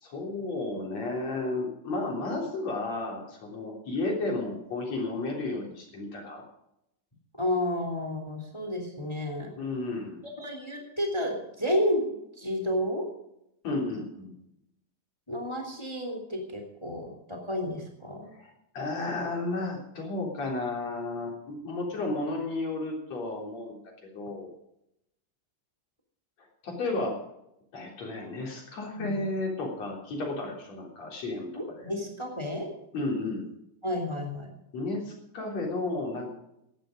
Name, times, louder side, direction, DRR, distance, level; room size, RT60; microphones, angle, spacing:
voice 1, 0.0-6.4 9.6-10.2 13.6-14.3 18.3-23.8 24.1-24.5 26.4-27.1 27.7-31.9 32.9-33.5 34.7-36.3, left 2 dB, 40° left, 0 dB, 4.2 m, -33 dB
voice 2, 7.4-9.5 10.4-13.0 15.3-18.3 28.9-29.2 31.5-32.7 33.8-34.5, left 1 dB, 10° left, 3 dB, 2.0 m, -31 dB
17.0 x 11.5 x 5.1 m, 0.82 s
omnidirectional pair, 5.1 m